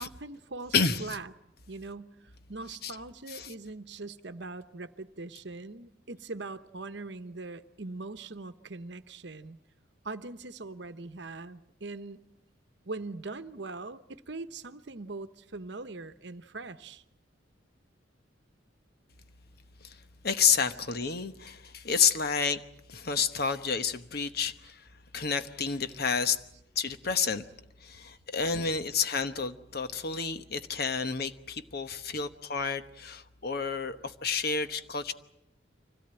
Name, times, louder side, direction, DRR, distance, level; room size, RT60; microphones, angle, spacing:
voice 1, 0.0-1.3 1.7-9.6 10.0-12.2 12.8-17.0, right 3 dB, 60° right, 1.0 m, -41 dB
voice 2, 0.7-1.2 2.8-2.9 3.3-3.5 19.8-20.0 20.2-22.6 22.9-24.9 25.1-26.4 26.7-27.4 27.8-35.1, left 6 dB, 50° left, 1.1 m, -30 dB
24.5 x 17.0 x 8.9 m
head